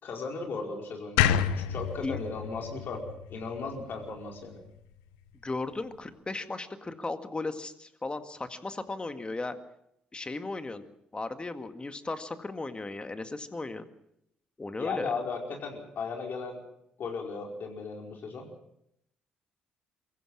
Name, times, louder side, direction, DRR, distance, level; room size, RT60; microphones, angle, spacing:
voice 1, 0.0-3.0 3.3-4.6 14.8-16.6 17.0-18.5, left 4 dB, 60° left, 1 dB, 5.0 m, -36 dB
sound 1, 1.2-4.3, left 9 dB, 85° left, 0.9 m, -29 dB
voice 2, 5.4-9.5 10.1-10.8 11.1-13.8 14.6-15.1, left 3 dB, 25° left, 9 dB, 2.0 m, -36 dB
23.5 x 15.0 x 7.5 m, 0.78 s
hypercardioid pair, 50°, 4 cm